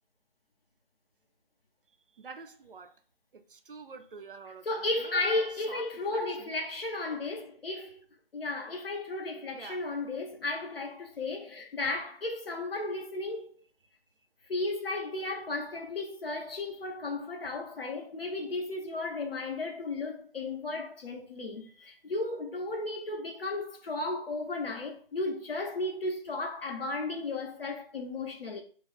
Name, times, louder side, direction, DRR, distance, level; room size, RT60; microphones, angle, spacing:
voice 1, 2.2-2.9 3.3-4.7 5.0-5.4 5.7-5.8 6.1-6.5 9.5-9.8, right 4 dB, 65° right, 0.5 m, -46 dB
voice 2, 4.6-8.0 8.3-13.6 14.5-28.6, left 2 dB, 75° left, 0.9 m, -34 dB
2.8 x 2.3 x 4.1 m
figure-of-eight pair, 170°, 30 cm